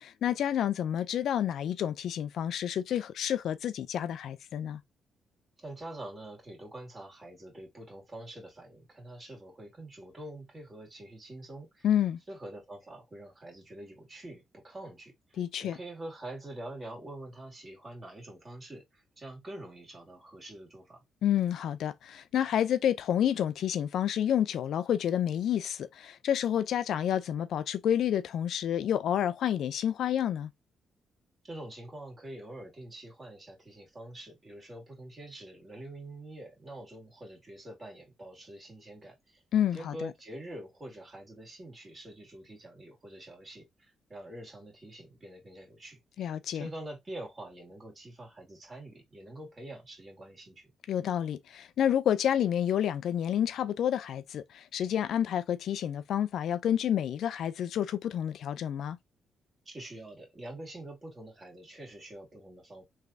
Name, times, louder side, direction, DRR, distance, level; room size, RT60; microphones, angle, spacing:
voice 1, 0.0-4.8 11.8-12.2 15.4-15.8 21.2-30.5 39.5-40.1 46.2-46.7 50.9-59.0, left 10 dB, 75° left, 0.4 m, -29 dB
voice 2, 5.6-11.9 12.3-21.0 31.4-39.4 39.7-50.7 59.7-62.8, right 1 dB, 30° right, 2.3 m, -45 dB
3.3 x 3.2 x 2.5 m
cardioid pair, 75°, 0 cm